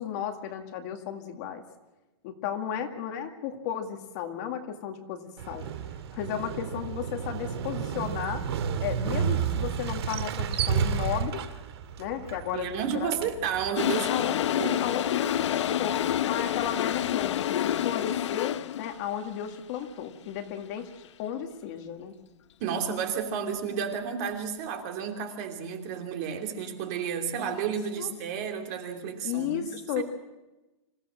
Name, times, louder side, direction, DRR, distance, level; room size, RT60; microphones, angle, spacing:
voice 1, 0.0-1.6 2.2-5.7 6.1-8.4 8.8-11.4 12.0-13.3 14.1-16.0 16.3-20.9 21.2-22.1 27.4-27.6 28.0-28.1 29.2-30.0, left 9 dB, 35° left, 4 dB, 2.1 m, -34 dB
Motorcycle, 5.4-13.7, right 7 dB, 60° right, 2.0 m, -31 dB
voice 2, 12.5-14.2 14.6-14.8 22.6-30.0, right 7 dB, 35° right, 4 dB, 2.8 m, -32 dB
Toilet flush, 13.8-19.0, left 11 dB, 75° left, 0.7 m, -28 dB
26.0 x 16.0 x 7.6 m, 1.0 s
supercardioid pair, 175°, 15 cm